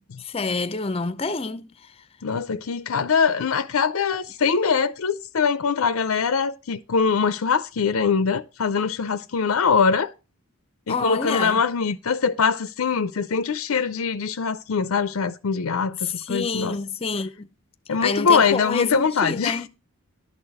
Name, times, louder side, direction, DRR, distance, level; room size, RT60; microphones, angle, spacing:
voice 1, 0.0-1.7 10.9-11.6 16.0-17.5 18.0-19.7, left 4 dB, 25° left, 0.6 m, -27 dB
voice 2, 2.2-10.1 10.9-16.8 17.9-19.6, left 5 dB, 80° left, 0.5 m, -23 dB
11.5 x 4.0 x 7.7 m
head